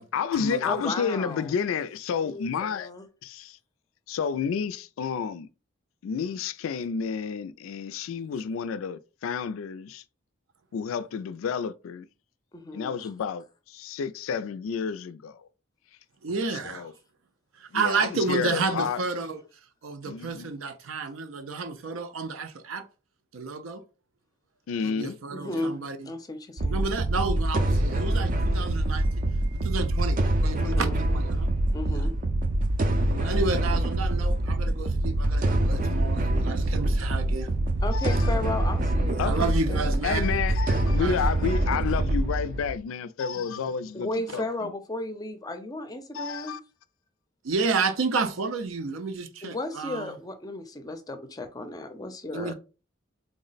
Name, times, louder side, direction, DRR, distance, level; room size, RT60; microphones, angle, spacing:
voice 1, 0.1-2.9 3.2-3.6 4.1-5.5 6.0-10.0 10.7-12.1 12.7-15.4 16.5-16.9 17.7-19.0 20.0-20.5 24.7-25.2 25.4-25.7 37.9-38.3 39.2-39.5 40.0-44.7 46.1-46.6, left 6 dB, 85° left, 0.3 m, -30 dB
voice 2, 0.6-1.5 2.2-3.1 12.5-13.1 16.3-16.4 25.3-25.8 26.1-26.9 30.6-31.0 31.7-32.1 37.8-39.9 41.2-41.3 43.3-43.5 43.9-46.6 49.4-52.5, left 2 dB, 20° left, 0.5 m, -35 dB
voice 3, 16.2-16.9 17.6-19.4 19.8-22.9 23.3-23.8 24.8-26.1 26.7-29.1 29.4-31.5 31.9-32.0 33.1-37.5 39.1-41.2 43.5-43.6 47.4-50.1 52.3-52.5, right 4 dB, 90° right, 0.5 m, -31 dB
sound 1, 26.6-42.8, right 1 dB, 40° right, 0.4 m, -25 dB
3.6 x 2.1 x 3.9 m
head